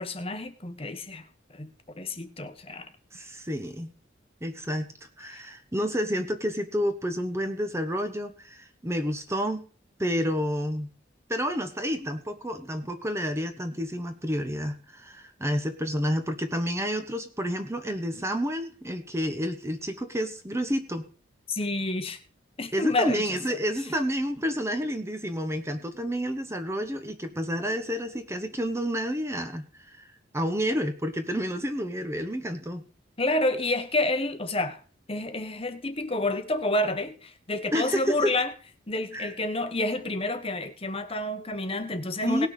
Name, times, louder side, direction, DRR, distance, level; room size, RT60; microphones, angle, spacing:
voice 1, 0.0-2.9 3.1-3.2 5.3-5.4 21.5-22.2 22.6-23.2 33.2-34.8 35.1-38.5 38.9-42.5, left 2 dB, 30° left, 1.1 m, -29 dB
voice 2, 3.1-3.9 4.4-4.9 5.2-9.6 10.0-10.9 11.3-21.1 22.7-30.1 30.3-32.8 37.7-38.3 39.1-39.3 42.2-42.5, equal, 15° right, 1.0 m, -29 dB
18.5 x 6.2 x 4.9 m
head